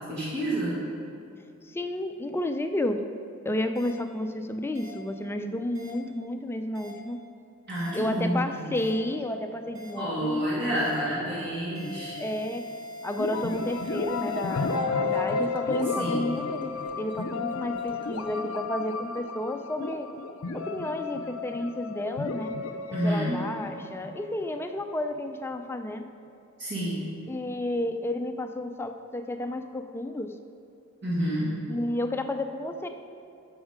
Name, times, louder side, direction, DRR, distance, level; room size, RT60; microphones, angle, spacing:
voice 1, 0.1-0.8 7.7-8.8 9.9-12.2 16.0-16.3 22.9-23.4 26.6-27.1 31.0-31.5, equal, 55° right, -7 dB, 2.0 m, -29 dB
voice 2, 1.6-3.0 3.4-7.2 7.9-10.4 12.2-12.7 13.0-20.1 20.5-22.5 23.0-26.1 27.3-30.3 31.7-32.9, left 1 dB, 10° left, 7 dB, 0.4 m, -31 dB
sound 1, 3.7-3.9 4.7-4.9 5.7-5.9 6.7-6.9 7.7-7.9 8.7-8.9 9.7-9.9 10.7-10.9 11.7-14.8, left 1 dB, 80° right, 2.2 m, -42 dB
sound 2, 13.2-24.9, left 4 dB, 80° left, 0.6 m, -32 dB
sound 3, 13.3-18.4, equal, 25° right, 0.6 m, -42 dB
10.0 x 6.3 x 5.0 m, 2.6 s
head